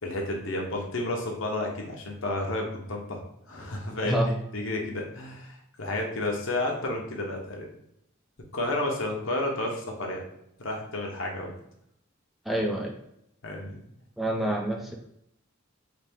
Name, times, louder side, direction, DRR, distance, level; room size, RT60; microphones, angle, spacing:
voice 1, 0.0-3.2 3.5-4.2 4.5-7.7 8.5-10.2 10.6-11.5 13.4-13.8, left 2 dB, 70° left, 0 dB, 0.9 m, -31 dB
voice 2, 4.0-4.4 12.5-12.9 14.2-15.0, right 1 dB, ahead, 0 dB, 0.4 m, -27 dB
3.9 x 2.6 x 3.5 m, 0.77 s
head